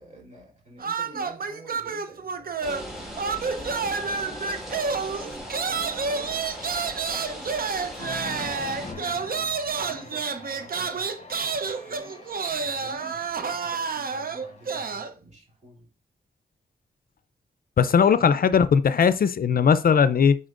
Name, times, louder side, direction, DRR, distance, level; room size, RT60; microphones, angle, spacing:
voice 1, 0.0-2.7 3.4-9.3 9.8-12.1 12.6-15.9 17.9-18.0, right 2 dB, 45° right, 3.4 m, -48 dB
sound 1, 0.8-2.9 3.2-15.1, right 5 dB, 60° right, 0.7 m, -29 dB
sound 2, 2.6-8.9, equal, ahead, 3.0 m, -38 dB
Cheering, 8.0-15.0, left 3 dB, 40° left, 1.2 m, -44 dB
voice 2, 17.8-20.4, left 6 dB, 60° left, 0.5 m, -19 dB
9.9 x 4.2 x 2.5 m
cardioid pair, 60°, 17 cm